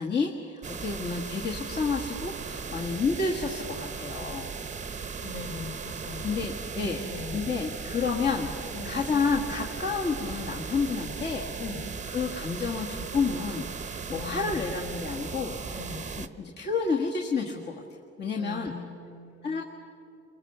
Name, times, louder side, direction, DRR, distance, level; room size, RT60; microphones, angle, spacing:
voice 1, 0.0-4.5 4.9-5.0 6.2-11.5 12.1-15.8 16.2-17.7 18.2-18.7 19.4-19.6, left 4 dB, 35° left, -2 dB, 1.9 m, -30 dB
sound 1, 0.6-16.3, right 5 dB, 25° right, 1.0 m, -37 dB
voice 2, 5.2-6.4 6.7-7.5 8.7-9.1 11.6-11.8 14.1-14.7 15.7-16.1 18.3-19.6, left 3 dB, 55° left, 2 dB, 3.7 m, -40 dB
29.5 x 22.5 x 6.9 m, 2.5 s
cardioid pair, 145°, 29 cm